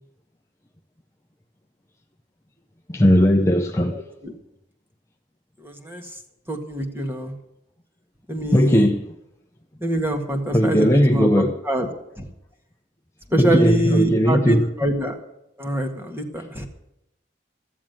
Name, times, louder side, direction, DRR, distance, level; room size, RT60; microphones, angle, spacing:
voice 1, 2.9-4.0 8.5-9.1 10.5-11.6 13.3-14.7, equal, 15° left, 0.7 m, -17 dB
voice 2, 3.8-4.3 5.6-6.2 6.5-7.3 8.3-8.9 9.8-11.9 12.2-12.3 13.3-15.2 15.6-16.7, right 1 dB, 10° right, 1.8 m, -25 dB
15.0 x 7.5 x 9.2 m
head